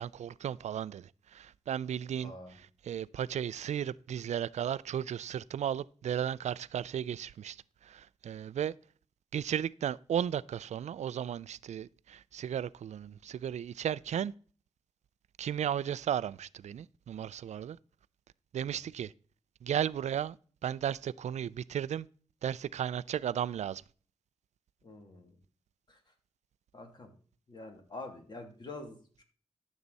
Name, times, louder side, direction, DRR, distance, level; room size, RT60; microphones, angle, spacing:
voice 1, 0.0-2.3 2.9-7.6 7.8-8.7 9.3-14.3 15.4-17.8 18.5-19.1 19.6-20.4 20.6-22.1 22.4-23.8, right 9 dB, 90° right, 0.4 m, -35 dB
voice 2, 2.2-2.6 24.8-25.4 25.9-26.0 26.7-27.1 27.5-29.2, left 2 dB, 40° left, 2.6 m, -46 dB
13.0 x 7.2 x 4.1 m
wide cardioid pair, 115°, 11 cm